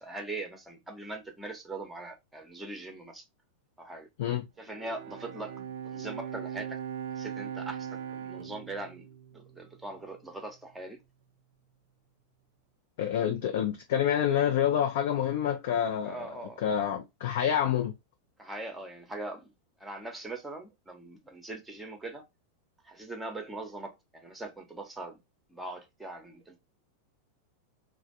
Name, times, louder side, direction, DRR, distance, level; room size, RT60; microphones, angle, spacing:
voice 1, 0.0-3.2 3.8-4.1 4.6-5.6 5.8-6.8 7.1-11.0 16.0-16.7 18.4-19.5 19.8-22.2 22.8-25.2 25.5-26.6, right 2 dB, 5° right, 0.7 m, -41 dB
Bowed string instrument, 4.6-10.1, right 9 dB, 55° right, 0.4 m, -40 dB
voice 2, 13.0-16.3 16.6-17.9, left 9 dB, 55° left, 0.4 m, -27 dB
3.2 x 2.0 x 2.3 m
figure-of-eight pair, 90°, 0 cm